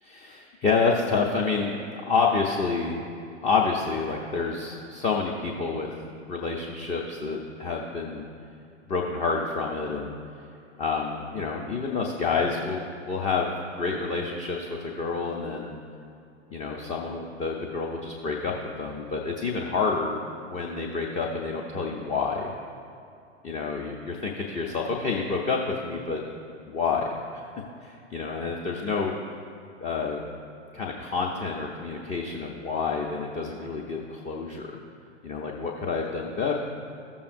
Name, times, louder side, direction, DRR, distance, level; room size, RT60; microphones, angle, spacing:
voice 1, 0.0-3.0 3.4-5.9 6.3-8.2 8.9-10.1 10.8-15.7 16.5-20.2 20.5-22.5 23.4-26.2 26.7-27.4 27.8-29.2 29.8-30.2 30.7-34.8 35.2-36.5, left 4 dB, 20° left, 0 dB, 0.6 m, -28 dB
14.5 x 7.0 x 2.6 m, 2.7 s
figure-of-eight pair, 105°, 36 cm